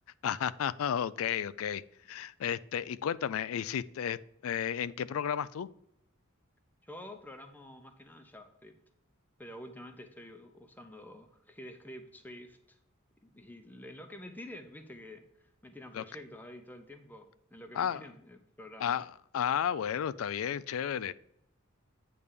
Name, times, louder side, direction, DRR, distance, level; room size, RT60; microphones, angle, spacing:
voice 1, 0.2-1.8 2.1-4.2 4.4-5.7 15.9-16.0 17.8-18.0 18.8-21.1, left 8 dB, 75° left, 18 dB, 0.4 m, -32 dB
voice 2, 6.8-8.8 9.4-12.8 13.2-15.2 15.6-19.0, left 1 dB, 10° left, 6 dB, 0.7 m, -48 dB
8.7 x 3.4 x 6.7 m, 0.76 s
head